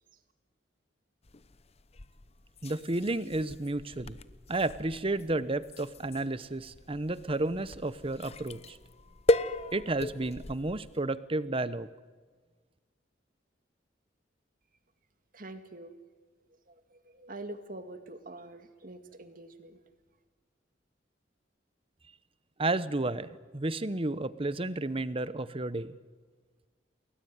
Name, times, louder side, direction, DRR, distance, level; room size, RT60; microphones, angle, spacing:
sound 1, 1.2-11.0, left 1 dB, 35° left, 0.8 m, -36 dB
voice 1, 2.6-4.2 4.5-8.8 9.7-11.9 22.6-26.0, right 2 dB, 30° right, 15 dB, 0.9 m, -32 dB
voice 2, 15.3-15.9 16.7-19.8, right 2 dB, 50° right, 8 dB, 2.1 m, -45 dB
29.0 x 20.5 x 9.6 m, 1.4 s
head